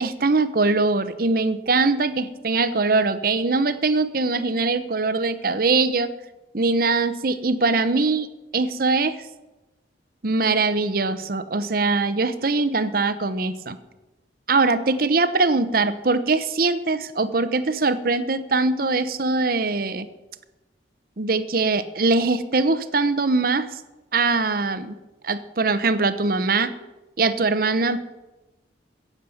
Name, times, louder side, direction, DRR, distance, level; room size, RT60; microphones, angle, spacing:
voice 1, 0.0-6.1 6.5-8.3 8.5-9.2 10.2-13.8 14.5-20.1 21.2-23.7 24.1-25.0 25.2-26.7 27.2-28.0, right 3 dB, 50° right, 12 dB, 0.8 m, -22 dB
17.0 x 7.3 x 7.1 m, 1.1 s
head